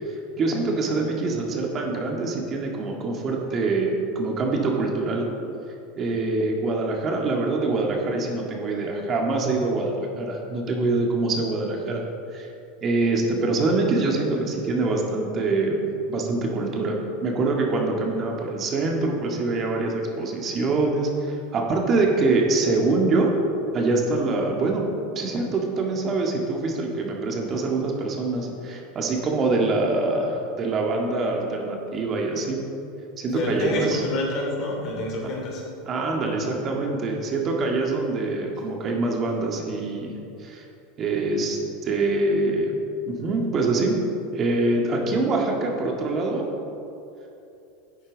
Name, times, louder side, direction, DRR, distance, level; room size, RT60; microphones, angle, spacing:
voice 1, 0.1-5.3 6.0-12.0 12.3-12.5 12.8-15.8 16.1-23.3 23.7-24.8 25.2-32.6 33.2-34.0 35.9-40.6 41.0-42.7 43.1-44.0 44.3-46.5, right 3 dB, 40° right, 0 dB, 1.8 m, -24 dB
voice 2, 33.3-35.6, left 1 dB, 55° left, -1 dB, 2.6 m, -28 dB
11.5 x 8.7 x 4.0 m, 2.8 s
hypercardioid pair, 95°, 0 cm